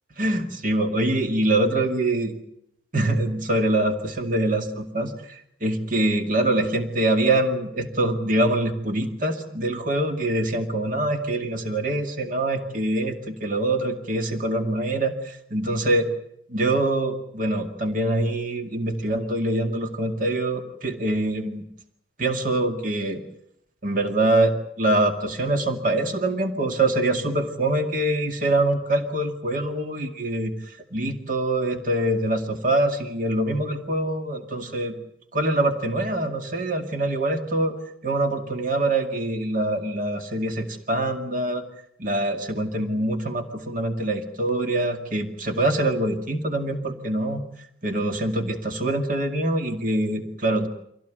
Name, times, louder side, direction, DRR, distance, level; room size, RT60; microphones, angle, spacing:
voice 1, 0.2-2.3 2.9-16.1 16.5-21.6 22.2-23.2 23.8-34.9 35.3-37.8 38.0-41.6 42.0-47.4 47.8-50.7, right 1 dB, 40° right, 5 dB, 2.3 m, -24 dB
25.5 x 16.5 x 9.3 m, 0.74 s
head